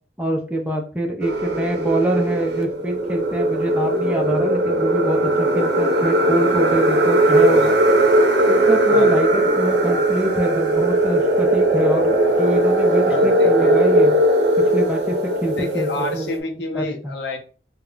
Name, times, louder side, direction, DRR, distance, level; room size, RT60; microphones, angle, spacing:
voice 1, 0.2-7.7 8.5-14.1 14.7-15.2 15.4-16.3 16.7-17.1, right 1 dB, 10° right, 0 dB, 0.4 m, -25 dB
sound 1, 1.2-16.4, right 1 dB, 80° right, 0.6 m, -18 dB
voice 2, 7.5-8.0 8.9-9.2 13.1-13.7 15.5-17.4, left 3 dB, 85° left, 3 dB, 0.6 m, -29 dB
2.3 x 2.2 x 3.7 m, 0.37 s
head